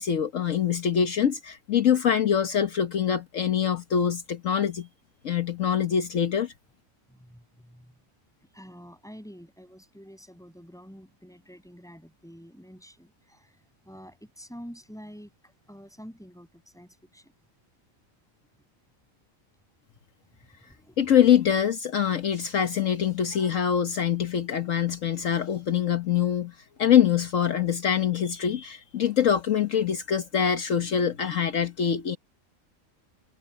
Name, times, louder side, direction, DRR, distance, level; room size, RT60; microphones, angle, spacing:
voice 1, 0.0-4.9 5.2-6.5 21.0-26.5 26.8-32.2, left 8 dB, 65° left, 1.4 m, -24 dB
voice 2, 7.1-7.9 8.5-13.6 13.9-17.3 20.3-21.1 23.0-23.1, equal, ahead, 7.0 m, -48 dB
omnidirectional pair, 1.4 m